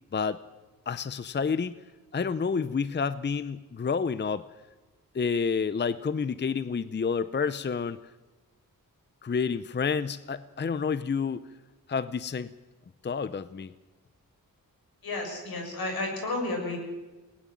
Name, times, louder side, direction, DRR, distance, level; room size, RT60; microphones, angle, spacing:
voice 1, 0.1-0.4 0.9-1.7 2.1-4.5 5.1-8.0 9.2-11.4 11.9-12.5 13.0-13.7, left 5 dB, 30° left, 15 dB, 0.6 m, -29 dB
voice 2, 15.0-16.8, left 2 dB, 80° left, 2 dB, 6.5 m, -32 dB
20.0 x 19.0 x 7.4 m, 1.2 s
cardioid pair, 80°, 36 cm